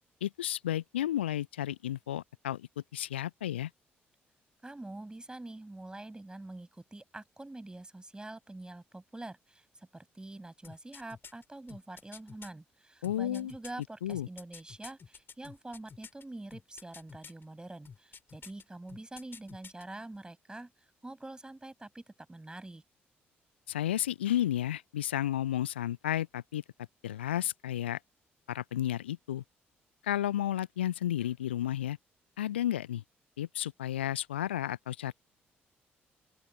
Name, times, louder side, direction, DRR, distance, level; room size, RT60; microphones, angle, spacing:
voice 1, 0.2-3.7 13.0-13.5 14.0-14.3 23.7-26.6 27.0-28.0 28.5-29.4 30.0-32.0 32.4-33.0 33.4-35.1, left 12 dB, 75° left, 0.8 m, -32 dB
voice 2, 4.6-20.7 21.0-22.0 22.3-22.8, right 2 dB, 15° right, 6.7 m, -45 dB
sound 1, 10.6-12.5 13.0-16.2 16.5-17.4 17.9-18.6 18.9-19.8 20.1-20.2, left 6 dB, 40° left, 5.3 m, -49 dB
open air
figure-of-eight pair, 45°, 6 cm